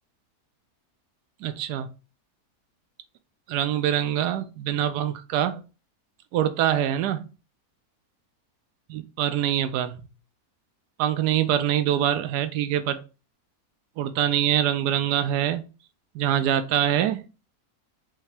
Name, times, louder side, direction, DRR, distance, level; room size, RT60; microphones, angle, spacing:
voice 1, 1.4-1.9 3.5-5.6 6.3-7.2 8.9-10.1 11.0-13.0 14.0-15.7 16.1-17.2, right 10 dB, 85° right, 1.2 m, -24 dB
5.8 x 2.7 x 3.2 m
omnidirectional pair, 1.7 m